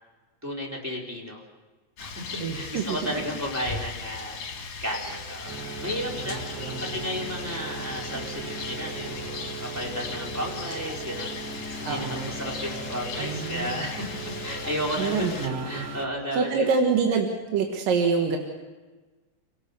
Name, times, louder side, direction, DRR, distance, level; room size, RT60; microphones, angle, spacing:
voice 1, 0.4-1.4 2.0-16.7, equal, 5° right, -2 dB, 3.7 m, -33 dB
Rain, 2.0-15.5, left 5 dB, 55° left, 3.1 m, -38 dB
voice 2, 2.4-3.0 6.2-7.0 11.8-12.3 13.2-13.9 15.0-15.9 16.3-18.4, right 5 dB, 70° right, 2 dB, 3.2 m, -26 dB
sound 1, 5.5-16.1, right 3 dB, 40° right, 1.5 m, -38 dB
29.0 x 18.0 x 6.8 m, 1.3 s
omnidirectional pair, 4.1 m